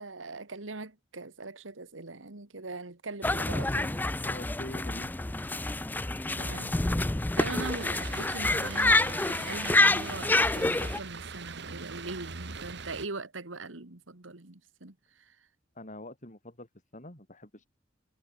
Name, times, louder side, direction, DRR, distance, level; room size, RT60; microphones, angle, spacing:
voice 1, 0.0-4.0 6.4-6.8 7.4-15.5, right 3 dB, 90° right, 2.1 m, -41 dB
sound 1, 3.2-11.0, left 2 dB, 10° left, 0.4 m, -27 dB
voice 2, 4.2-5.2 15.8-17.7, left 1 dB, 40° left, 7.4 m, -45 dB
sound 2, 7.6-13.1, right 4 dB, 65° right, 2.0 m, -42 dB
head